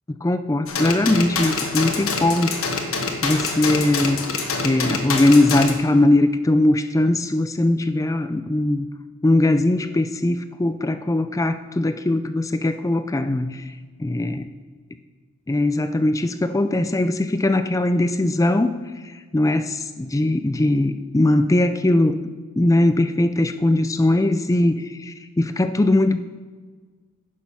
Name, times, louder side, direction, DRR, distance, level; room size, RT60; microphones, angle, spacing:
voice 1, 0.1-2.7 3.2-4.3 4.6-8.9 9.2-13.7 14.0-14.5 15.5-18.8 19.3-22.3 22.6-26.2, left 1 dB, 15° left, 10 dB, 0.3 m, -20 dB
sound 1, 0.7-5.7, left 4 dB, 65° left, 1.2 m, -26 dB
10.0 x 6.5 x 5.5 m, 1.5 s
head